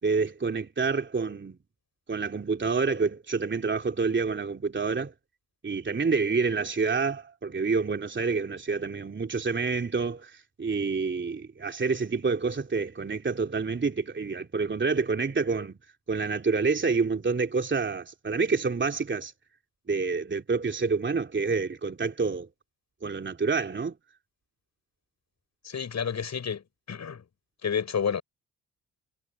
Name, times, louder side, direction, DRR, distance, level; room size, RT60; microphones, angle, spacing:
voice 1, 0.0-1.6 2.1-5.1 5.6-15.8 16.1-19.3 19.9-22.5 23.0-24.0, right 4 dB, 30° right, 3.1 m, -28 dB
voice 2, 25.6-27.2 27.6-28.2, left 7 dB, 50° left, 6.9 m, -30 dB
hypercardioid pair, 50°, 36 cm